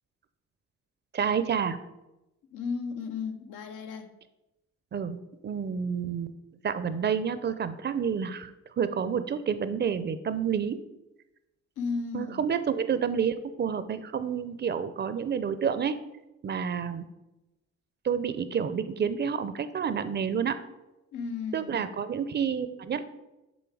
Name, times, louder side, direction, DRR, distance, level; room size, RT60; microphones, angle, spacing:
voice 1, 1.1-1.8 4.9-6.3 6.6-8.5 8.8-10.8 12.1-16.0 16.4-17.0 18.0-20.6 21.5-23.0, right 7 dB, 35° right, 0.5 m, -29 dB
voice 2, 2.5-4.1 11.8-12.4 21.1-21.9, left 5 dB, 85° left, 0.7 m, -34 dB
7.0 x 3.7 x 4.7 m
cardioid pair, 90°, 30 cm